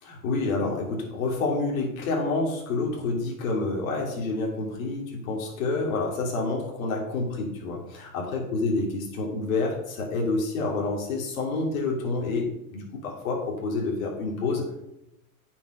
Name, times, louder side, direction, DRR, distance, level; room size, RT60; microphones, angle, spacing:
voice 1, 0.0-14.9, left 3 dB, 70° left, -1 dB, 3.4 m, -28 dB
9.2 x 6.2 x 5.4 m, 0.84 s
hypercardioid pair, 120°, 42 cm